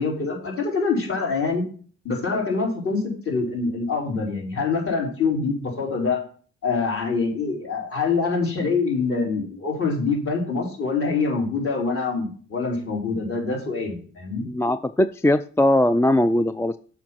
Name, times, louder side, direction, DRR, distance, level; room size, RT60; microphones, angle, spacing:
voice 1, 0.0-1.6 2.0-6.2 6.6-14.4, left 4 dB, 45° left, -2 dB, 4.5 m, -25 dB
voice 2, 14.4-16.8, left 1 dB, 10° left, 12 dB, 0.3 m, -20 dB
7.3 x 6.2 x 6.0 m, 0.43 s
cardioid pair, 90°, 30 cm